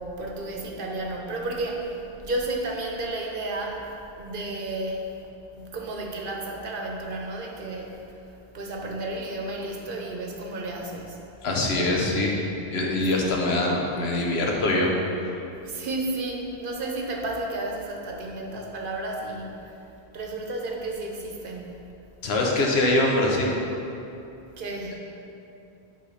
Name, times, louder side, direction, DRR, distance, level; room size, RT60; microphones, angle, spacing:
voice 1, 0.0-3.9 4.2-5.1 5.5-11.2 11.9-12.5 13.2-13.4 15.6-19.8 20.1-21.8 24.6-24.9, right 2 dB, 60° right, 0 dB, 0.9 m, -32 dB
voice 2, 11.4-12.3 12.7-14.9 22.2-23.6, left 2 dB, 80° left, -1 dB, 1.1 m, -23 dB
7.8 x 3.5 x 4.9 m, 2.8 s
omnidirectional pair, 1.0 m